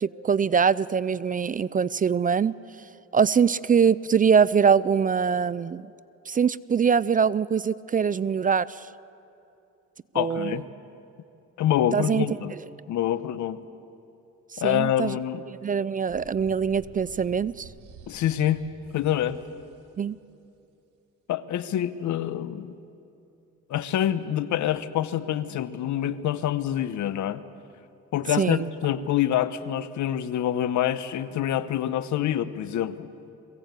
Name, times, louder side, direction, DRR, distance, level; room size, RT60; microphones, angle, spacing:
voice 1, 0.0-2.5 3.1-5.9 6.3-8.9 10.1-10.6 11.9-12.3 12.5-12.6 14.5-15.1 15.5-17.7 20.0-20.2 28.4-28.6, right 6 dB, 30° right, 19 dB, 0.4 m, -23 dB
voice 2, 10.1-10.7 11.6-12.6 12.9-13.6 14.6-15.4 18.1-18.6 18.9-19.4 21.3-22.7 23.7-27.4 28.1-33.1, left 11 dB, 70° left, 14 dB, 0.9 m, -26 dB
sound 1, 16.1-20.0, right 4 dB, 90° right, 1.9 m, -49 dB
22.5 x 16.5 x 8.2 m, 2.7 s
cardioid pair, 90°, 30 cm